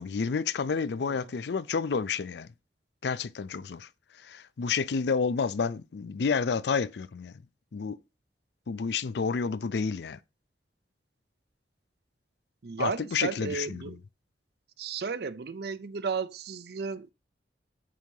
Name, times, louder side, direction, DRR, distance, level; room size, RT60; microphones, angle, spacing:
voice 1, 0.0-2.5 3.0-3.9 4.2-7.4 7.7-8.0 8.7-10.2 12.8-14.0, left 5 dB, 65° left, 0.4 m, -30 dB
voice 2, 12.6-14.0 14.8-17.1, right 5 dB, 60° right, 0.5 m, -34 dB
7.6 x 2.8 x 5.2 m
head